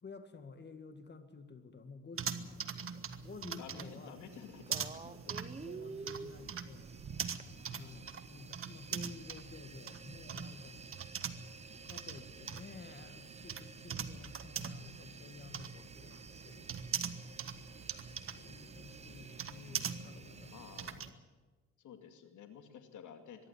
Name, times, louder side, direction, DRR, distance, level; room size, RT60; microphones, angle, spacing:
voice 1, 0.0-4.3 4.7-5.1 5.6-6.9 7.7-11.1 11.8-17.6 17.9-21.3, left 4 dB, 35° left, 8 dB, 2.0 m, -53 dB
sound 1, 2.2-21.1, right 7 dB, 45° right, 1.5 m, -43 dB
voice 2, 3.6-5.7 6.0-6.2 7.4-8.1 18.7-21.0 21.8-23.5, left 8 dB, 80° left, 7 dB, 2.4 m, -54 dB
sound 2, 4.3-20.9, right 4 dB, 20° right, 1.0 m, -52 dB
23.5 x 12.0 x 9.7 m, 1.3 s
cardioid pair, 90°, 30 cm